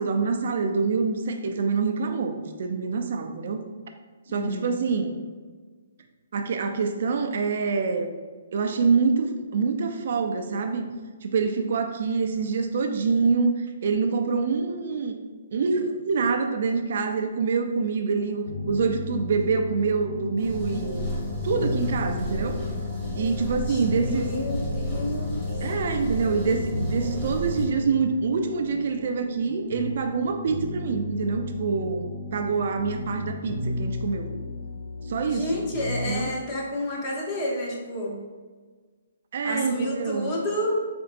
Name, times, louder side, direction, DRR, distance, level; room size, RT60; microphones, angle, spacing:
voice 1, 0.0-3.6 4.3-5.2 6.3-8.1 8.5-10.9 11.2-15.2 15.5-21.1 21.4-22.6 23.2-24.3 25.6-34.3 35.1-35.6 36.0-36.3 39.3-40.4, right 5 dB, 60° right, 6 dB, 0.4 m, -26 dB
voice 2, 4.3-4.7 23.7-25.4 35.2-38.1 39.4-40.8, left 1 dB, 25° left, -2 dB, 0.9 m, -30 dB
sound 1, 18.4-36.1, left 2 dB, 85° left, 0.8 m, -34 dB
sound 2, 20.4-27.7, left 1 dB, 5° left, 1.4 m, -32 dB
4.3 x 3.8 x 2.5 m, 1.4 s
hypercardioid pair, 155°, 0 cm